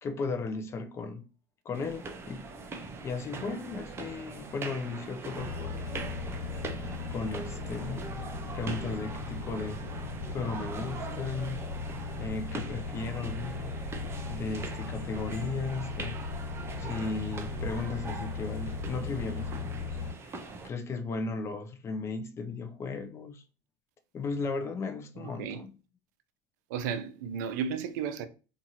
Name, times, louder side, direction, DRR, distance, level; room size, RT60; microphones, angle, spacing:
voice 1, 0.0-1.3 1.6-2.5 3.0-5.8 7.1-8.0 8.3-9.8 10.3-11.6 12.2-13.7 14.3-16.2 16.8-20.0 20.3-20.4 20.6-23.4 24.1-25.7, left 4 dB, 30° left, 0.5 m, -36 dB
sound 1, 1.7-20.7, right 3 dB, 25° right, 0.5 m, -42 dB
sound 2, 5.3-20.1, left 4 dB, 65° left, 1.2 m, -37 dB
voice 2, 25.2-25.7 26.7-28.3, right 7 dB, 75° right, 0.4 m, -34 dB
2.7 x 2.5 x 2.8 m
supercardioid pair, 105°, 9 cm